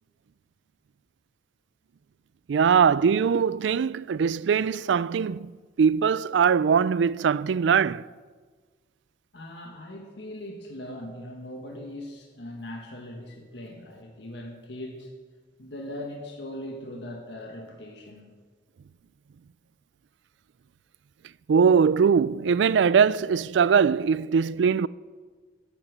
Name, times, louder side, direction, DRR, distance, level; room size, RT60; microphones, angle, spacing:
voice 1, 2.5-5.5 5.8-8.0 21.5-24.9, right 6 dB, 90° right, 0.4 m, -21 dB
voice 2, 9.3-15.1 15.6-18.3, left 1 dB, 80° left, 1.7 m, -40 dB
13.5 x 8.9 x 7.9 m
head